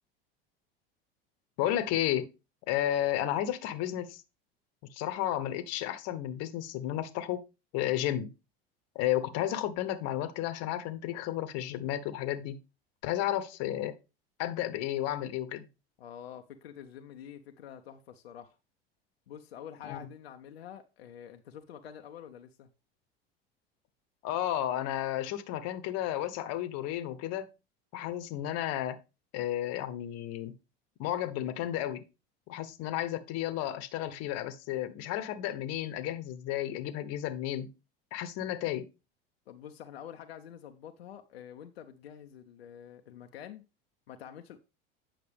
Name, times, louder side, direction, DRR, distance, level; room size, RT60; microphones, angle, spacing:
voice 1, 1.6-2.3 2.7-4.2 4.9-7.5 7.7-8.3 8.9-12.6 13.0-13.9 14.4-15.7 19.8-20.0 24.2-27.5 27.9-29.0 29.3-30.5 31.0-32.0 32.5-37.7 38.1-38.9, left 12 dB, 55° left, 1.0 m, -32 dB
voice 2, 16.0-18.6 19.3-22.7 39.5-43.6 44.1-44.6, left 9 dB, 85° left, 0.7 m, -47 dB
8.7 x 5.8 x 3.4 m
hypercardioid pair, 80°, 30 cm